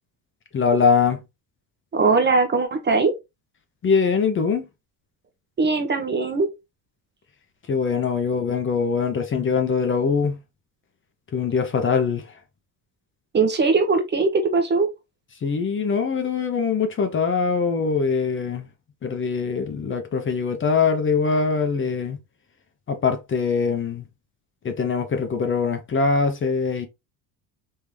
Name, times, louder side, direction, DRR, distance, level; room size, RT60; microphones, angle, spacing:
voice 1, 0.5-1.2 3.8-4.7 7.7-10.4 11.3-12.3 15.4-18.7 19.0-22.2 22.9-24.0 24.6-26.9, left 5 dB, 30° left, 0.7 m, -22 dB
voice 2, 1.9-3.1 5.6-6.5 13.3-14.9, right 4 dB, 25° right, 0.8 m, -20 dB
3.7 x 2.7 x 3.1 m
cardioid pair, 105°, 41 cm